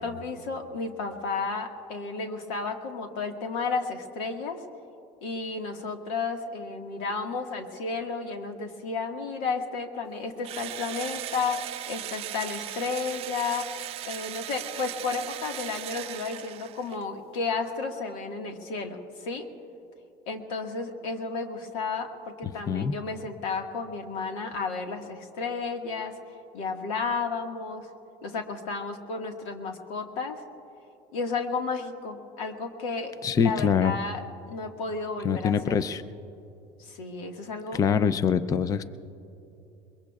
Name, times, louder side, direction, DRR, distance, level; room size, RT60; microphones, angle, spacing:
voice 1, 0.0-4.6 5.2-19.5 20.3-22.1 22.4-26.1 26.5-27.9 28.2-30.4 31.1-33.1 33.4-35.8 36.8-37.8, left 4 dB, 90° left, 4 dB, 1.7 m, -32 dB
Engine / Drill, 10.4-17.0, right 13 dB, 40° right, 0.4 m, -38 dB
voice 2, 22.4-22.9 33.2-33.9 35.2-36.0 37.7-38.8, left 7 dB, 25° left, 13 dB, 0.4 m, -24 dB
22.5 x 22.0 x 2.4 m, 2.9 s
cardioid pair, 140°, 15 cm